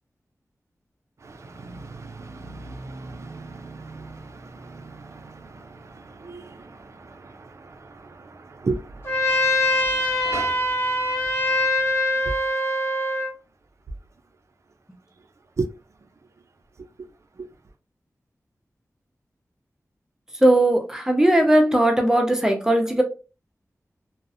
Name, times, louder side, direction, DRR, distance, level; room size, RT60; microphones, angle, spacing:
voice 1, 1.2-5.7 5.9-6.7 7.0-7.1 8.6-9.0 10.2-10.6 15.6-15.7, right 3 dB, 55° right, 0.4 m, -34 dB
Trumpet, 9.0-13.3, left 1 dB, 45° left, 0.9 m, -23 dB
voice 2, 20.4-23.0, right 1 dB, 10° right, 0.6 m, -18 dB
2.5 x 2.0 x 2.6 m
wide cardioid pair, 85°, 6 cm